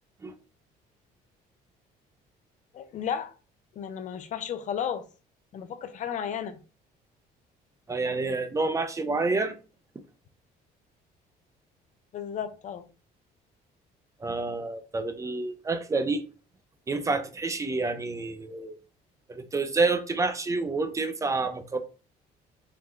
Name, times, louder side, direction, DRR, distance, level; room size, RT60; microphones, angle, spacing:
voice 1, 2.7-3.3 3.7-5.1 5.5-6.6 12.1-12.9, left 8 dB, 45° left, 0.5 m, -33 dB
voice 2, 7.9-9.6 14.2-16.2 16.9-18.8 19.3-21.8, right 3 dB, 20° right, 0.4 m, -28 dB
3.7 x 2.2 x 3.0 m
cardioid pair, 110°, 17 cm